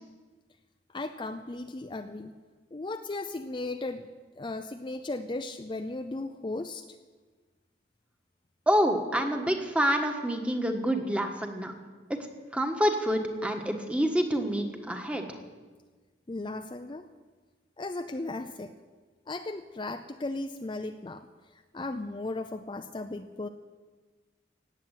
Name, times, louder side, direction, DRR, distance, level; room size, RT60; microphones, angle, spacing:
voice 1, 0.9-2.3 2.7-6.8 16.3-17.1 17.8-18.7 19.3-21.3 21.7-23.5, left 2 dB, 25° left, 7 dB, 0.5 m, -36 dB
voice 2, 8.7-11.7 12.5-15.2, equal, 5° right, 4 dB, 1.4 m, -27 dB
17.0 x 7.8 x 9.3 m, 1.4 s
head